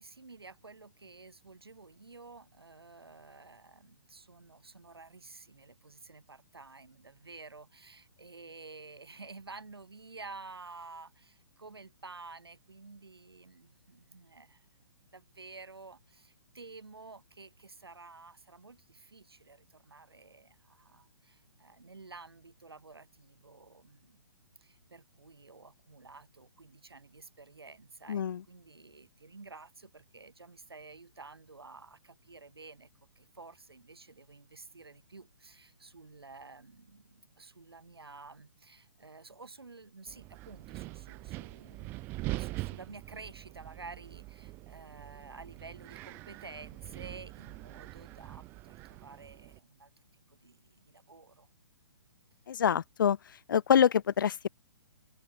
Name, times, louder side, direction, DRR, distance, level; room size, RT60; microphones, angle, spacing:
voice 1, 0.0-14.7 15.1-24.2 24.6-32.9 33.2-42.1 42.4-49.9 50.3-51.5, right 3 dB, 75° right, 5.9 m, -51 dB
voice 2, 28.1-28.4 52.5-53.2 53.5-54.5, left 8 dB, 55° left, 0.4 m, -25 dB
Wind, 40.1-49.6, right 21 dB, 15° right, 0.4 m, -43 dB
figure-of-eight pair, 125°, 13 cm